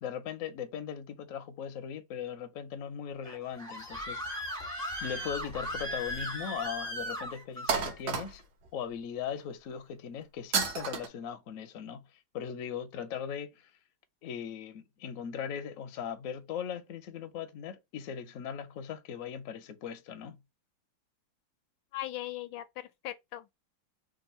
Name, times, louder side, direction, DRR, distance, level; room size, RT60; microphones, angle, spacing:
voice 1, 0.0-4.6 5.0-8.4 8.7-13.7 14.2-20.4, left 8 dB, 65° left, 0.8 m, -39 dB
Screaming, 3.2-7.8, equal, 5° left, 0.7 m, -37 dB
sound 1, 5.4-6.3 6.7-6.8 7.7-8.7 10.5-11.1, right 6 dB, 60° right, 1.3 m, -32 dB
voice 2, 21.9-23.6, left 15 dB, 80° left, 1.3 m, -39 dB
3.5 x 2.5 x 4.2 m
omnidirectional pair, 2.1 m